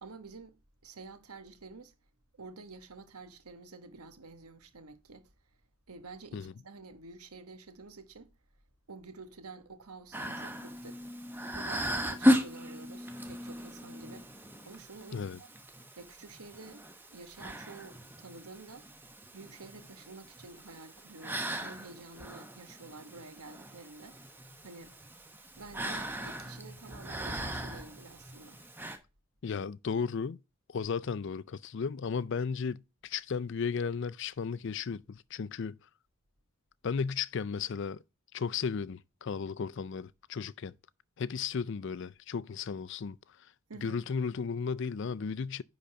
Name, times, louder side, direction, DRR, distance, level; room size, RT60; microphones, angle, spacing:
voice 1, 0.0-1.9 2.4-5.3 5.9-8.3 8.9-11.1 11.5-15.5 16.0-18.9 19.3-24.2 24.6-25.0 25.6-28.6 43.7-44.0, right 3 dB, 90° right, 1.3 m, -50 dB
sound 1, 10.1-29.0, equal, 10° right, 0.9 m, -36 dB
voice 2, 29.4-30.4 30.7-35.8 36.8-38.0 38.3-40.7 41.2-43.2 43.8-45.6, left 6 dB, 55° left, 0.4 m, -34 dB
10.0 x 3.9 x 5.7 m
head